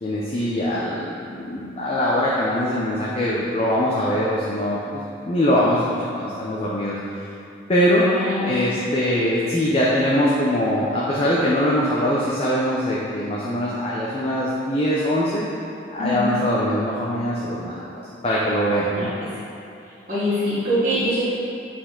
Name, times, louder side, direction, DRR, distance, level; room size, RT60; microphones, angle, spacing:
voice 1, 0.0-7.0 7.7-8.1 8.5-15.5 15.9-17.9 18.2-19.1, equal, 30° left, -6 dB, 0.6 m, -22 dB
voice 2, 7.9-8.5 16.0-16.3 19.0-19.1 20.1-21.2, equal, 40° right, -12 dB, 1.4 m, -23 dB
7.1 x 4.4 x 3.8 m, 2.7 s
head